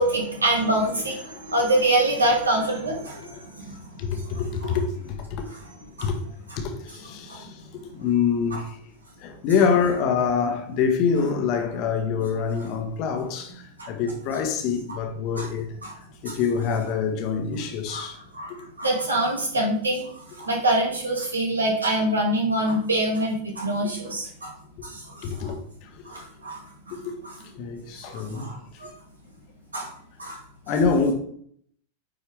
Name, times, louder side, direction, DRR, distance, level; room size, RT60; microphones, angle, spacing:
voice 1, 0.0-3.9 4.1-4.8 6.0-6.1 7.3-7.5 8.5-8.6 13.8-13.9 14.9-15.0 15.4-15.5 15.8-15.9 16.3-16.4 17.9-18.1 18.3-24.5 24.8-25.5 26.0-27.3 28.0-28.9 29.7-29.9 30.2-30.4, right 1 dB, 75° right, 2.3 m, -26 dB
voice 2, 4.0-5.5 6.0-6.2 6.6-7.6 7.9-8.8 9.2-15.7 16.2-18.2 25.2-25.9 27.0-27.1 27.5-28.5 30.7-31.1, left 6 dB, 40° left, 1.3 m, -25 dB
9.0 x 4.7 x 3.5 m
figure-of-eight pair, 90°, 0 cm